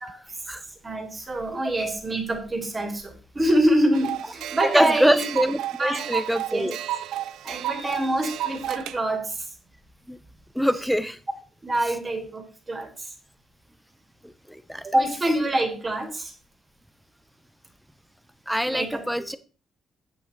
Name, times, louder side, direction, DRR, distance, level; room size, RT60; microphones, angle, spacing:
voice 1, 0.0-0.4 0.8-5.3 5.8-6.0 6.5-6.7 7.4-9.5 11.6-13.1 14.8-16.3 18.7-19.0, right 1 dB, 25° right, 4 dB, 2.8 m, -25 dB
sound 1, 3.9-9.0, right 13 dB, 85° right, 0.4 m, -32 dB
voice 2, 4.7-6.8 7.8-7.9 10.1-10.2 10.5-11.2 14.2-14.8 18.5-19.4, equal, ahead, 14 dB, 0.8 m, -24 dB
8.6 x 7.1 x 4.5 m, 0.37 s
cardioid pair, 90°, 0 cm